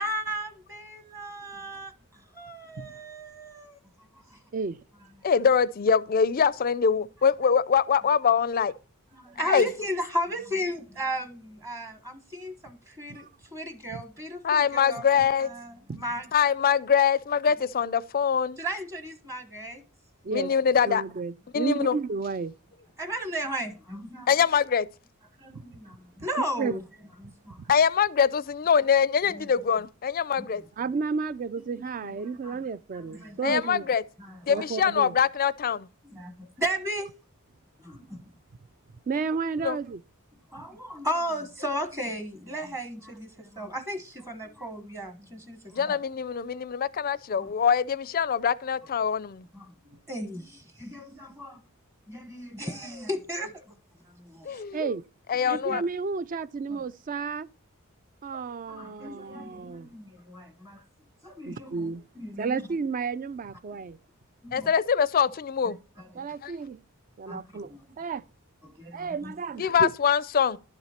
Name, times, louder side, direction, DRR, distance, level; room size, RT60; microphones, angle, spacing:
voice 1, 0.0-4.4 9.1-16.3 18.6-19.8 23.0-24.3 25.4-26.8 27.2-27.6 29.3-29.5 30.4-30.5 31.8-32.6 32.9-33.6 34.2-34.6 36.0-37.1 37.8-38.3 40.5-46.0 47.4-47.5 49.5-51.6 52.1-53.8 54.1-54.6 55.4-55.8 56.7-56.8 58.3-58.4 58.7-60.8 61.2-62.6 64.4-64.7 65.7-66.3 67.3-67.8 68.6-69.3, equal, 15° right, 1.1 m, -36 dB
voice 2, 5.2-8.7 9.4-9.7 14.4-15.5 16.3-18.6 20.3-21.0 21.5-22.0 24.3-24.9 27.7-30.6 33.4-34.0 34.5-35.9 39.6-39.8 45.7-49.5 54.4-54.9 55.3-55.8 64.5-65.8 66.4-66.5 69.6-70.6, left 7 dB, 40° left, 0.4 m, -23 dB
voice 3, 20.8-22.5 25.5-25.6 26.2-26.3 26.6-26.8 27.6-27.7 30.8-33.8 34.5-35.1 39.1-40.0 40.6-40.7 54.7-55.1 55.4-57.5 58.2-59.9 61.4-62.0 62.4-64.0 66.2-66.8 67.2-68.2 68.9-69.9, right 4 dB, 40° right, 0.3 m, -32 dB
11.5 x 5.9 x 4.2 m
head